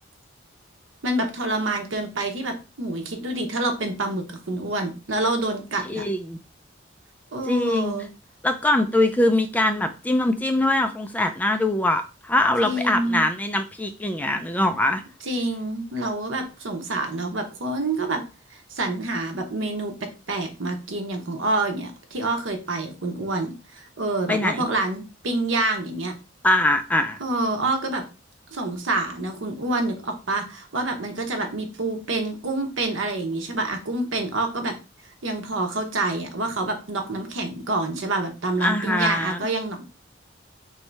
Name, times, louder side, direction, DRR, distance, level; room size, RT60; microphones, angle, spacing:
voice 1, 1.0-6.0 7.3-8.1 12.6-13.3 15.2-18.2 18.5-26.1 27.2-28.0 28.5-34.8 35.2-39.8, right 2 dB, 80° right, 5 dB, 0.9 m, -27 dB
voice 2, 5.9-6.4 7.5-8.0 8.4-15.0 24.3-24.7 26.4-27.2 38.6-39.4, left 1 dB, 10° left, 7 dB, 0.3 m, -22 dB
3.1 x 2.7 x 4.5 m, 0.31 s
head